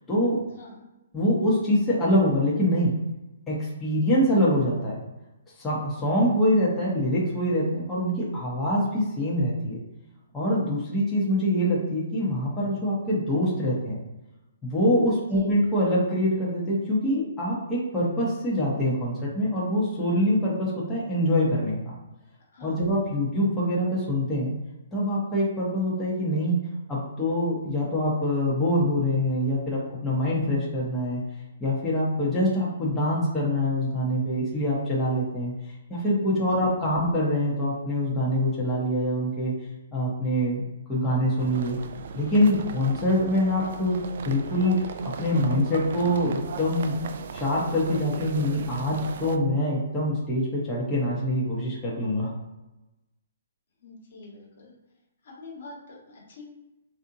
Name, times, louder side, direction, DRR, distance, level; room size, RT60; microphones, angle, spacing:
voice 1, 0.1-0.4 1.1-3.0 3.5-5.0 5.6-9.8 10.3-14.0 14.6-22.0 22.6-24.5 24.9-26.6 26.9-31.2 31.6-35.5 35.9-39.5 39.9-40.6 40.9-41.8 42.1-44.0 44.2-47.0 47.3-52.3, equal, 10° left, -7 dB, 1.1 m, -24 dB
voice 2, 15.2-15.5 22.5-22.9 36.6-36.8 53.8-54.7 55.2-56.4, left 3 dB, 60° left, -2 dB, 1.4 m, -46 dB
sound 1, 41.4-49.4, right 6 dB, 55° right, 0.3 m, -38 dB
3.4 x 2.7 x 2.7 m, 1.0 s
hypercardioid pair, 140°, 0 cm